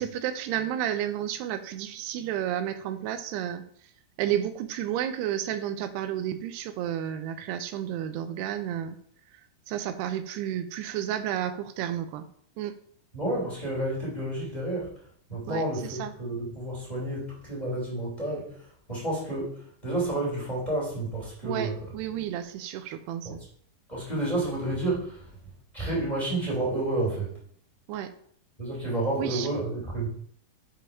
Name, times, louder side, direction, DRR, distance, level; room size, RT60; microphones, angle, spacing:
voice 1, 0.0-3.6 4.2-9.0 9.7-12.3 12.6-12.8 15.5-15.6 16.0-16.1 21.4-23.4 27.9-28.1 29.2-29.5, right 10 dB, 90° right, 10 dB, 2.7 m, -31 dB
voice 2, 13.1-15.0 15.3-21.8 23.2-23.3 23.9-27.4 28.6-30.1, right 2 dB, 10° left, -4 dB, 2.5 m, -30 dB
7.1 x 5.1 x 5.6 m, 0.62 s
omnidirectional pair, 4.7 m